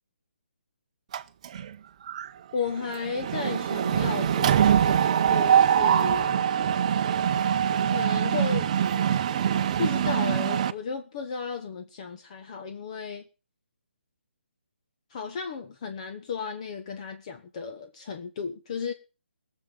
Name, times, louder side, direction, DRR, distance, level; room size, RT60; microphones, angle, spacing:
Mechanisms, 1.1-1.7 2.1-2.3 2.5-10.7, right 9 dB, 35° right, 0.8 m, -23 dB
voice 1, 2.5-6.4 7.9-8.7 9.8-13.2 15.1-18.9, left 5 dB, 35° left, 6 dB, 1.2 m, -34 dB
17.5 x 7.4 x 6.8 m, 0.34 s
hypercardioid pair, 160°, 6 cm